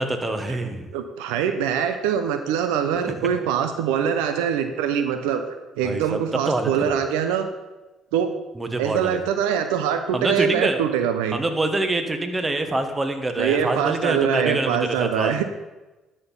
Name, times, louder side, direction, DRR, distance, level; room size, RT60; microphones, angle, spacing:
voice 1, 0.0-0.9 3.1-3.2 5.8-7.0 8.5-9.2 10.1-10.8 11.3-15.4, right 2 dB, 25° right, 7 dB, 1.4 m, -25 dB
voice 2, 0.9-5.4 5.8-7.5 8.1-8.3 8.8-11.4 13.4-15.4, right 8 dB, 85° right, 8 dB, 0.6 m, -23 dB
12.5 x 4.4 x 5.5 m, 1.1 s
supercardioid pair, 65°, 0 cm